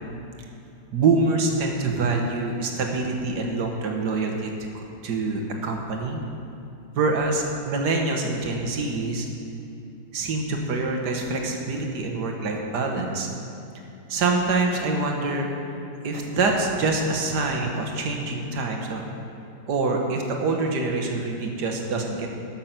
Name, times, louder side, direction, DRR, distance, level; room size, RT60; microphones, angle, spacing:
voice 1, 0.9-4.5 5.0-6.2 6.9-9.3 10.1-13.3 14.1-15.5 16.0-19.0 19.7-22.3, right 3 dB, 60° right, 2 dB, 1.6 m, -25 dB
13.0 x 6.7 x 5.8 m, 2.7 s
omnidirectional pair, 2.1 m